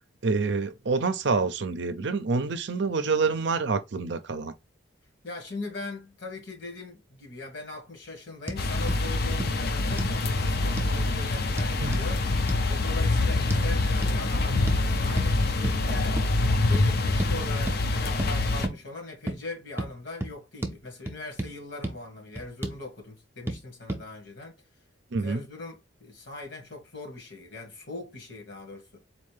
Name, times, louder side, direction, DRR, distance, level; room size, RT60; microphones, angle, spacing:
voice 1, 0.2-4.5 11.8-12.0 25.1-25.4, right 4 dB, 65° right, 0.5 m, -27 dB
voice 2, 5.2-12.2 12.7-16.2 16.6-24.5 25.2-28.9, left 2 dB, 70° left, 1.7 m, -40 dB
sound 1, 8.5-8.6 8.9-9.0 9.4-9.5 10.0-10.2 10.8-10.9 11.6-12.1 12.5-12.6 13.5-13.6 14.0-14.2 14.7-14.8 15.2-15.3 15.6-15.8 16.2-16.4 16.7-16.9 17.2-17.3 17.7-17.8 18.2-18.3 18.6-18.8 19.3-19.4 19.8-19.9 20.2-20.3 20.6-20.8 21.1-21.5 21.8-21.9 22.4-22.8 23.5-23.6 23.9-24.0, right 1 dB, 10° right, 0.5 m, -32 dB
sound 2, 8.6-18.7, left 2 dB, 50° left, 0.5 m, -25 dB
4.1 x 2.7 x 3.2 m
head